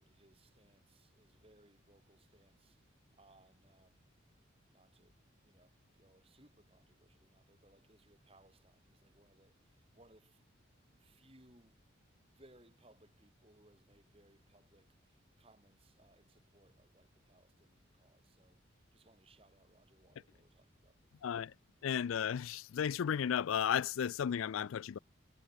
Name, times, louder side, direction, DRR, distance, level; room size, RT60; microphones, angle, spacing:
voice 1, 0.0-2.8 3.1-4.1 4.7-5.2 5.4-10.4 10.8-11.8 12.2-18.6 18.9-21.4, right 1 dB, 30° right, 5.0 m, -67 dB
voice 2, 21.2-21.5 21.8-25.0, left 8 dB, 90° left, 0.4 m, -34 dB
head